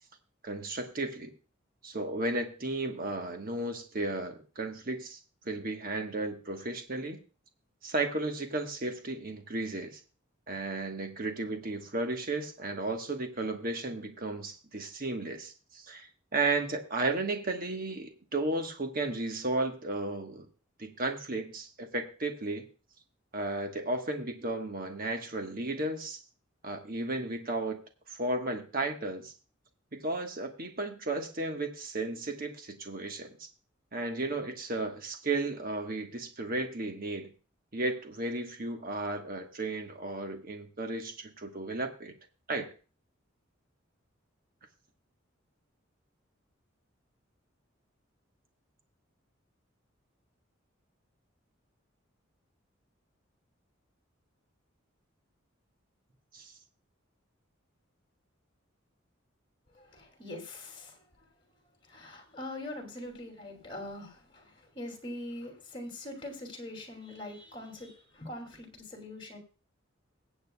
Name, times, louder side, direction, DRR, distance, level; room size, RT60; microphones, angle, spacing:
voice 1, 0.4-1.3 1.8-5.2 5.4-7.2 7.8-10.0 10.5-20.5 20.8-22.7 23.3-26.2 26.6-27.8 28.1-29.3 29.9-33.5 33.9-37.3 37.7-42.1 42.5-42.7 56.3-56.5, right 2 dB, 45° right, 5 dB, 1.3 m, -34 dB
voice 2, 59.7-61.0 61.8-69.4, left 1 dB, 25° left, 3 dB, 2.5 m, -43 dB
22.5 x 7.9 x 2.3 m, 0.35 s
head